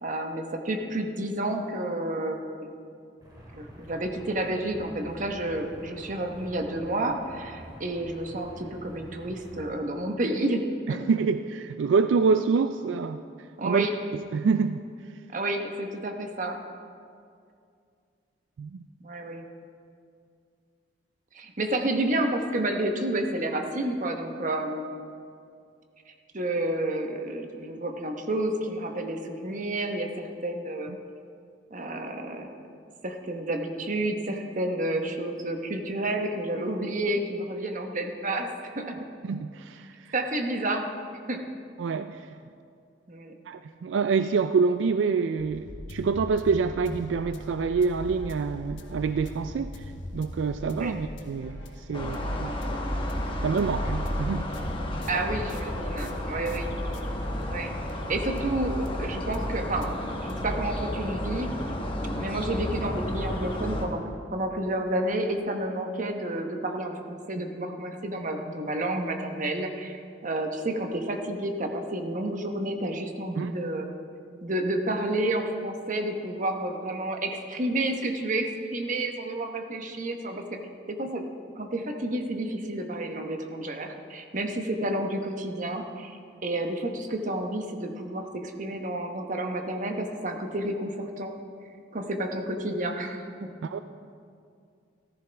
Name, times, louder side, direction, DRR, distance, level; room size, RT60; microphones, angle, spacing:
voice 1, 0.0-2.8 3.5-11.0 13.6-13.9 15.3-16.6 19.0-19.4 21.3-24.9 26.1-30.9 31.7-32.5 33.0-39.0 40.1-40.8 41.3-41.5 43.1-43.3 50.8-50.9 55.1-56.7 57.5-57.8 58.1-59.9 60.2-61.5 62.1-64.0 64.3-73.9 74.4-80.4 80.9-81.2 81.6-91.3 91.9-93.5, right 1 dB, 45° right, 4 dB, 1.1 m, -30 dB
sound 1, 3.2-9.6, equal, 25° right, 2.6 m, -47 dB
voice 2, 10.9-13.2 13.6-13.9 14.1-14.8 18.6-18.8 39.2-40.1 41.8-42.3 43.5-52.5 53.4-54.5 73.4-73.5 93.6-93.8, right 5 dB, 80° right, 10 dB, 0.3 m, -26 dB
sound 2, 45.4-59.5 59.8-59.9 60.3-60.4, left 1 dB, 80° left, 1.1 m, -41 dB
sound 3, 51.9-63.9, left 1 dB, 30° left, 1.3 m, -32 dB
14.0 x 14.0 x 3.4 m, 2.3 s
head